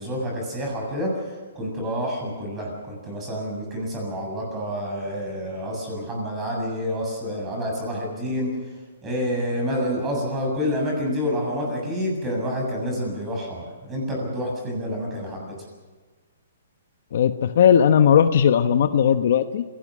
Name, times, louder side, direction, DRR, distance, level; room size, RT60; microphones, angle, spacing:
voice 1, 0.0-8.5 9.0-15.5, equal, 15° right, 0 dB, 7.5 m, -28 dB
voice 2, 17.1-19.6, left 8 dB, 55° left, 9 dB, 1.1 m, -17 dB
27.0 x 18.0 x 6.3 m, 1.4 s
hypercardioid pair, 165°, 0 cm